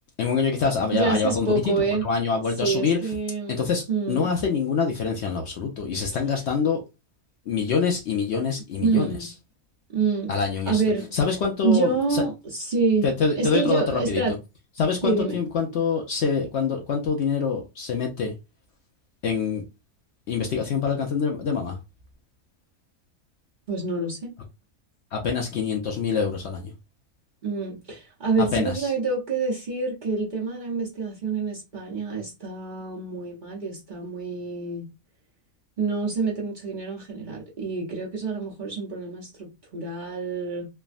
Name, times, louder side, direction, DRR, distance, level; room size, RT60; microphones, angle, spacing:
voice 1, 0.2-1.6 2.0-3.0 3.5-6.8 7.5-9.3 10.3-10.8 11.1-12.2 13.0-14.4 14.8-18.3 19.2-19.6 20.3-21.8 25.1-26.7 28.5-28.9, left 5 dB, 65° left, 0.7 m, -25 dB
voice 2, 0.9-2.0 2.6-4.3 8.8-9.3 9.9-10.3 10.7-11.1 11.6-14.3 15.0-15.4 23.7-24.3 27.4-34.8 35.8-40.7, right 4 dB, 40° right, 0.8 m, -27 dB
3.4 x 2.1 x 2.4 m
omnidirectional pair, 1.5 m